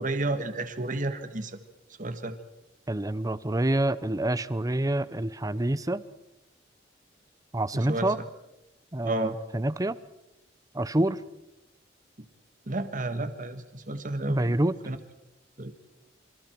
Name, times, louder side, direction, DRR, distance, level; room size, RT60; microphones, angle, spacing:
voice 1, 0.0-1.6 2.0-2.4 7.7-8.1 9.0-9.3 12.7-14.5 14.9-15.0 15.6-15.7, right 2 dB, 45° right, 9 dB, 1.7 m, -31 dB
voice 2, 2.9-6.0 7.5-8.2 8.9-10.0 10.7-11.2 14.3-14.8, right 1 dB, 20° right, 16 dB, 0.7 m, -27 dB
27.0 x 25.5 x 4.6 m, 0.92 s
head